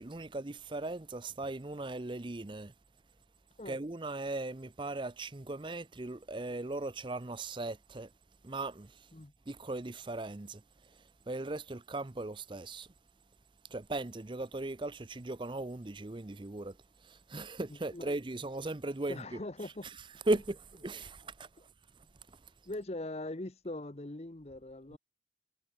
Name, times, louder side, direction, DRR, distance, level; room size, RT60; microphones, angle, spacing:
voice 1, 0.0-2.7 3.7-8.1 8.4-9.1 9.5-10.6 11.3-12.9 13.7-16.8 17.0-19.4 20.3-21.5 24.9-25.0, right 2 dB, 30° right, 0.7 m, -38 dB
voice 2, 17.7-18.1 19.1-19.9 22.7-25.0, left 2 dB, 35° left, 1.0 m, -41 dB
head